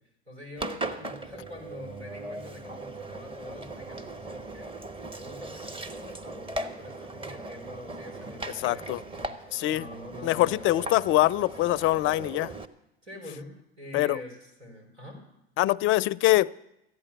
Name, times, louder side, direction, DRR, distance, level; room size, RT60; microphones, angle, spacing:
voice 1, 0.3-4.7 5.1-11.0 13.0-15.2, left 1 dB, 90° right, 1 dB, 3.9 m, -44 dB
Engine, 0.6-12.7, right 2 dB, 15° right, 1.0 m, -39 dB
voice 2, 8.6-9.0 9.5-9.9 10.2-12.5 13.9-14.2 15.6-16.5, left 16 dB, 40° left, 22 dB, 0.4 m, -24 dB
13.5 x 10.0 x 6.8 m, 0.85 s
hypercardioid pair, 70°, 31 cm